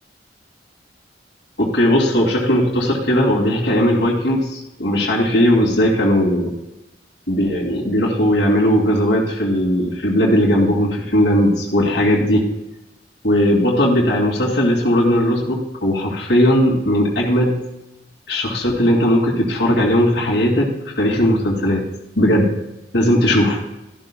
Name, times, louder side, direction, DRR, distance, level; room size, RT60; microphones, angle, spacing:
voice 1, 1.6-6.5 7.3-12.4 13.2-17.6 18.3-20.7 21.0-21.8 22.2-22.5 22.9-23.6, equal, 80° left, -4 dB, 2.5 m, -17 dB
13.5 x 12.0 x 2.3 m, 0.94 s
head